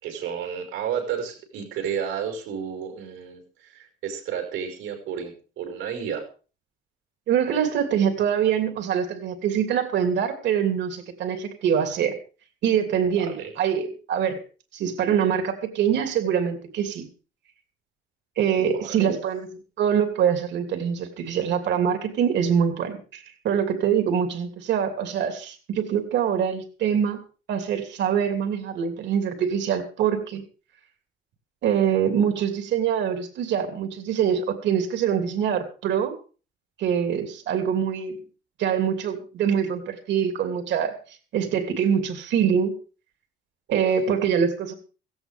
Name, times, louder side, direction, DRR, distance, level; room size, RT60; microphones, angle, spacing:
voice 1, 0.0-6.3 13.2-13.5 18.6-19.2 43.7-43.9, right 8 dB, 80° right, 4 dB, 5.7 m, -32 dB
voice 2, 7.3-12.2 12.6-14.4 14.7-17.1 18.4-19.5 19.8-27.2 27.5-30.4 31.6-36.1 36.8-38.2 38.6-41.0 41.3-42.7 43.7-44.7, right 8 dB, 60° right, 6 dB, 3.1 m, -24 dB
17.0 x 16.5 x 3.5 m, 0.36 s
cardioid pair, 170°, 20 cm